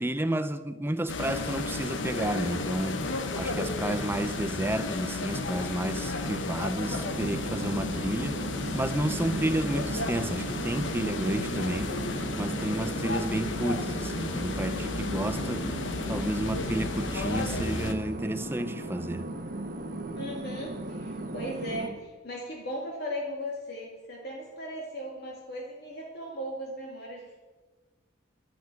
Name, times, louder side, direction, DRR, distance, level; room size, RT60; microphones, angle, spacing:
voice 1, 0.0-3.1 3.4-8.4 8.7-11.9 12.4-15.7 16.1-19.3, right 1 dB, 10° right, 0.5 m, -31 dB
sound 1, 1.1-17.9, left 2 dB, 70° left, 1.0 m, -33 dB
sound 2, 6.8-21.9, right 1 dB, 45° right, 1.3 m, -37 dB
voice 2, 20.2-27.4, equal, 55° left, 2.2 m, -37 dB
12.0 x 8.1 x 9.0 m
head